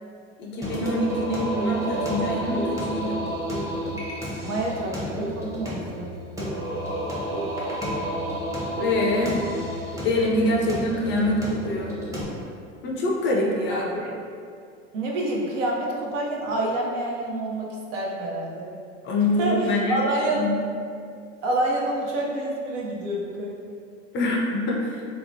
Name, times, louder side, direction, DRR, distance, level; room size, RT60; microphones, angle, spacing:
voice 1, 0.4-3.2 8.8-9.4 10.0-12.0 12.8-13.9 19.0-20.0 20.3-20.5 24.1-25.0, left 1 dB, 30° left, -1 dB, 0.4 m, -25 dB
Singing, 0.6-12.2, equal, 10° right, 0.6 m, -30 dB
voice 2, 4.4-6.6 10.6-10.7 13.7-14.1 14.9-18.7 19.1-20.5 21.4-23.7, right 1 dB, 75° right, -2 dB, 0.6 m, -28 dB
2.7 x 2.0 x 2.5 m, 2.3 s
hypercardioid pair, 80°, 38 cm